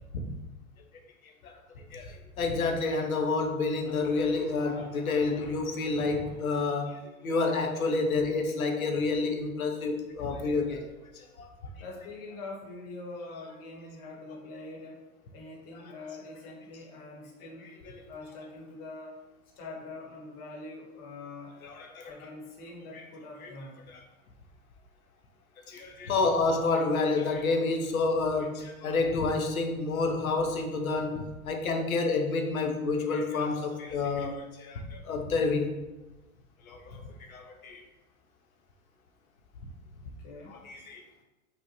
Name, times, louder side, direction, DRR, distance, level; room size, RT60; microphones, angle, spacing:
voice 1, 1.9-11.5 17.8-18.0 21.6-22.1 23.4-23.5 23.9-24.0 25.7-35.8 36.6-37.8 40.5-41.0, left 3 dB, 80° left, 4 dB, 0.5 m, -29 dB
voice 2, 11.8-15.0 15.3-17.7 18.1-19.2 19.6-21.6 22.0-23.8 40.2-40.6, left 2 dB, 45° left, -2 dB, 0.8 m, -44 dB
2.8 x 2.1 x 2.7 m, 1.1 s
figure-of-eight pair, 90°, 42 cm